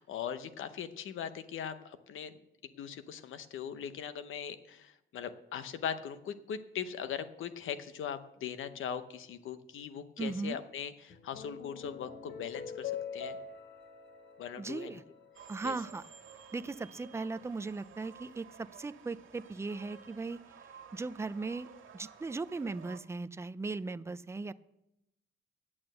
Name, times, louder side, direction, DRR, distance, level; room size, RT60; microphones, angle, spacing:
voice 1, 0.0-2.4 2.7-13.4 14.4-15.0 15.6-15.8, left 8 dB, 85° left, 12 dB, 0.8 m, -40 dB
voice 2, 10.2-10.6 14.6-15.0 15.5-16.1 16.5-20.4 20.9-24.5, right 3 dB, 15° right, 15 dB, 0.4 m, -38 dB
sound 1, 11.1-15.7, left 7 dB, 60° left, 1.3 m, -44 dB
sound 2, 15.3-23.0, right 7 dB, 85° right, 2.0 m, -54 dB
8.7 x 8.6 x 7.7 m, 0.86 s
cardioid pair, 120°, 20 cm